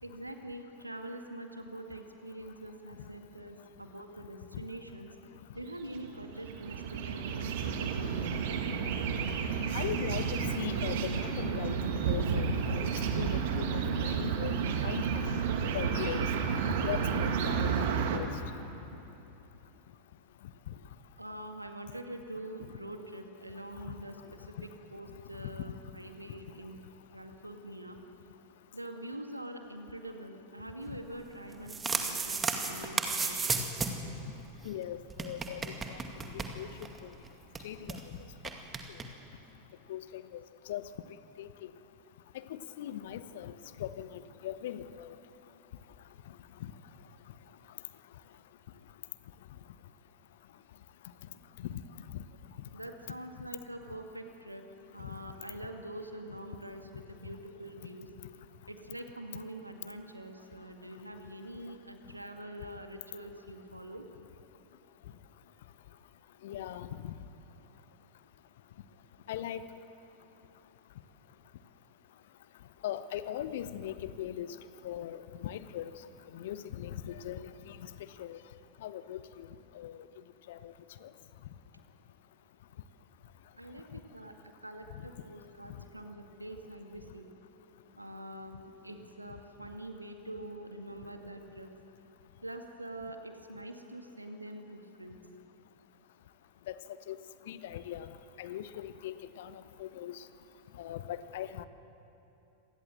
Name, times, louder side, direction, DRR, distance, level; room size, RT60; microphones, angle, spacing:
voice 1, 0.0-5.1 5.5-8.6 21.2-26.8 27.1-28.0 28.7-33.5 52.7-54.6 54.9-58.1 58.7-64.1 83.5-84.3 84.6-87.3 88.0-91.7 92.4-95.2, right 1 dB, 85° right, 5 dB, 2.1 m, -45 dB
sound 1, 5.6-18.2, right 6 dB, 55° right, 2.1 m, -31 dB
voice 2, 9.7-15.1 15.7-16.4 16.8-18.3 20.7-20.8 23.9-24.0 30.9-31.0 34.6-36.0 36.3-36.7 37.0-37.1 37.6-38.1 38.9-39.0 39.9-40.8 41.4-41.7 42.3-45.2 46.6-46.7 51.6-51.8 52.1-52.2 66.4-67.1 69.3-69.6 72.8-74.5 74.8-75.9 76.3-77.8 78.2-78.4 78.8-79.5 79.7-80.1 80.5-80.7 81.0-81.1 96.7-96.8 97.1-97.2 97.5-100.3 100.8-101.7, left 11 dB, 55° left, 13 dB, 1.0 m, -40 dB
sound 2, 31.5-34.1 34.4-34.5 34.6-34.7 35.1-37.0 37.2-37.3 37.5-38.0 38.4-39.0, right 4 dB, 15° right, 2.2 m, -33 dB
26.0 x 19.0 x 7.8 m, 2.9 s
figure-of-eight pair, 90°, 0 cm